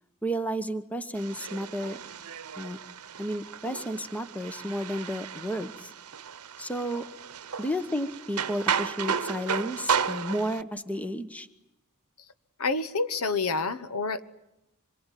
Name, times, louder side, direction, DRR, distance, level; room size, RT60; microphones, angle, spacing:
voice 1, 0.2-2.0 2.6-2.8 3.2-5.9 6.6-7.0 7.6-11.5, equal, 5° left, 10 dB, 1.2 m, -32 dB
sound 1, 1.1-10.6, right 7 dB, 75° right, 0.9 m, -34 dB
voice 2, 12.6-14.2, left 4 dB, 70° left, 12 dB, 1.1 m, -28 dB
26.0 x 22.5 x 9.2 m, 0.87 s
head